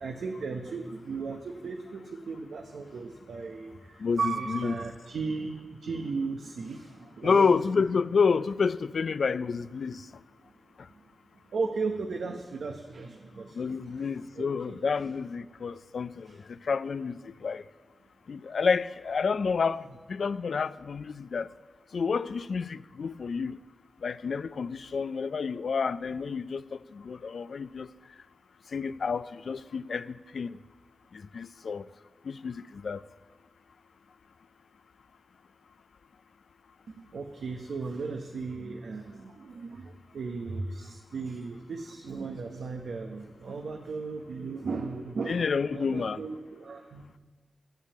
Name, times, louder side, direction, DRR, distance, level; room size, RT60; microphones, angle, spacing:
voice 1, 0.0-7.5 11.5-14.8 16.3-16.4 36.9-47.2, right 4 dB, 85° right, 0.8 m, -36 dB
voice 2, 4.0-4.7 7.2-10.1 10.8-10.9 13.5-17.6 18.3-21.5 21.9-23.6 24.0-27.9 28.7-30.6 31.1-31.9 32.2-33.0 45.3-46.2, left 5 dB, 75° left, 0.4 m, -29 dB
12.0 x 7.3 x 8.6 m
cardioid pair, 40°, 0 cm